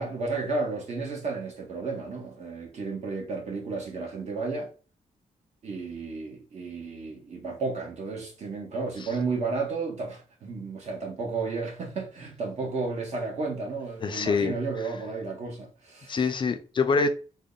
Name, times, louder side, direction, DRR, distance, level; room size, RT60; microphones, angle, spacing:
voice 1, 0.0-4.7 5.6-16.2, right 3 dB, 55° right, 1.1 m, -32 dB
voice 2, 14.0-14.5 16.1-17.1, left 4 dB, 35° left, 0.3 m, -25 dB
3.6 x 2.1 x 3.8 m
wide cardioid pair, 170°, 13 cm